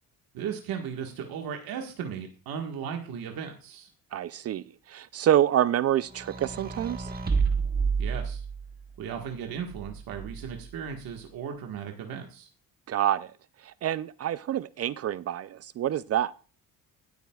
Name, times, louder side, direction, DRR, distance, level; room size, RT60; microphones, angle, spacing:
voice 1, 0.3-3.9 8.0-8.4 9.0-12.5, right 7 dB, 75° right, 1.6 m, -36 dB
voice 2, 4.1-4.6 4.9-7.1 12.9-13.3 13.8-16.3, right 11 dB, 45° right, 0.4 m, -27 dB
sound 1, 6.1-8.8 9.7-10.7, right 5 dB, 25° right, 1.3 m, -30 dB
17.0 x 8.2 x 2.3 m
cardioid pair, 115°, 35 cm